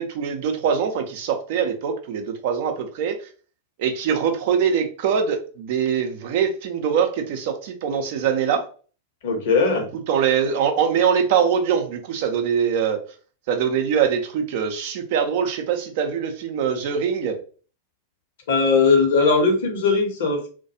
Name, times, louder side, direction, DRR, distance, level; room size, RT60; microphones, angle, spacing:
voice 1, 0.0-3.2 3.8-8.6 10.1-13.0 13.5-17.4, right 7 dB, 50° right, 5 dB, 0.5 m, -23 dB
voice 2, 9.2-9.9 18.5-20.5, left 4 dB, 55° left, 3 dB, 0.8 m, -19 dB
2.3 x 2.2 x 2.7 m, 0.39 s
figure-of-eight pair, 90°, 0 cm